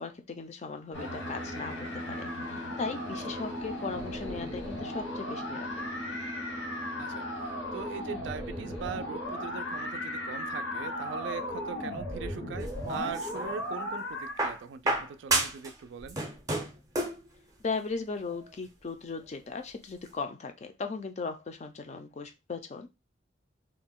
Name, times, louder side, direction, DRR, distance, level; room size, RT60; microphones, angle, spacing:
voice 1, 0.0-5.8 17.6-22.9, left 4 dB, 35° left, 0.4 m, -37 dB
sound 1, 0.9-14.4, left 1 dB, 85° left, 1.0 m, -36 dB
voice 2, 7.0-16.2, right 6 dB, 70° right, 0.3 m, -41 dB
sound 2, 12.6-13.6 14.4-15.7 16.0-17.3 18.3-18.4, right 2 dB, 20° right, 0.5 m, -31 dB
2.4 x 2.1 x 3.5 m
head